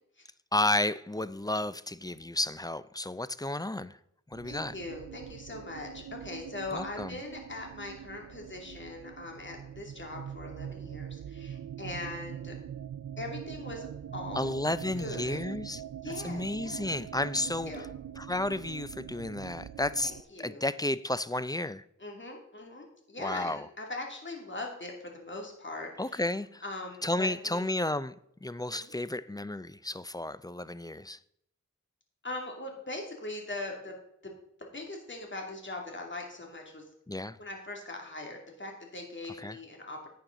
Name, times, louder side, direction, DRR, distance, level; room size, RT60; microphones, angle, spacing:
voice 1, 0.5-4.0 4.3-4.7 6.7-7.2 14.4-15.8 16.2-17.7 18.2-21.8 23.2-23.7 26.0-26.6 27.0-28.2 28.4-31.2 37.1-37.4 39.4-39.6, left 1 dB, 10° left, 0.4 m, -32 dB
sound 1, 4.3-20.2, right 9 dB, 75° right, 0.5 m, -43 dB
voice 2, 4.4-12.5 13.2-13.9 14.1-14.5 15.0-15.4 16.0-16.9 17.7-17.8 20.0-20.6 22.0-26.2 26.6-27.6 28.7-28.9 32.2-34.0 34.2-34.3 34.6-36.9 37.4-40.1, left 2 dB, 35° left, 2.6 m, -41 dB
11.0 x 8.6 x 3.9 m
wide cardioid pair, 60°, 31 cm